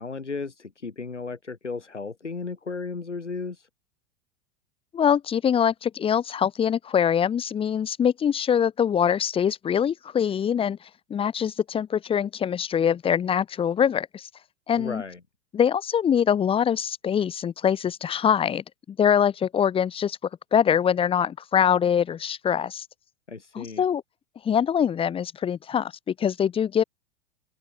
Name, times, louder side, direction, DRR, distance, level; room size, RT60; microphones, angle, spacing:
voice 1, 0.0-3.7 14.8-15.2 23.3-23.8, left 4 dB, 85° left, 1.5 m, -34 dB
voice 2, 4.9-10.8 11.1-14.3 14.7-15.0 15.5-20.2 20.5-22.8 23.5-24.0 24.4-26.8, left 8 dB, 15° left, 0.7 m, -23 dB
figure-of-eight pair, 90°, 35 cm